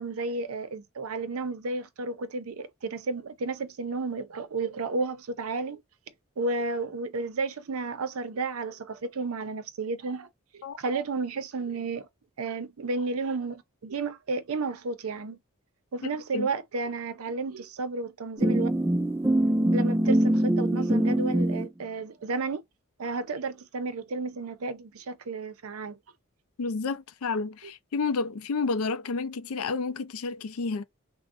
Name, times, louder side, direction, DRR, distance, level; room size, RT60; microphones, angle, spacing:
voice 1, 0.0-5.8 6.4-12.1 12.4-15.4 15.9-18.7 19.7-22.6 23.0-26.0, right 3 dB, 80° right, 0.5 m, -32 dB
sound 1, 18.4-21.7, right 1 dB, 10° right, 0.3 m, -23 dB
voice 2, 26.6-30.8, left 4 dB, 75° left, 0.4 m, -30 dB
3.5 x 2.1 x 2.4 m
head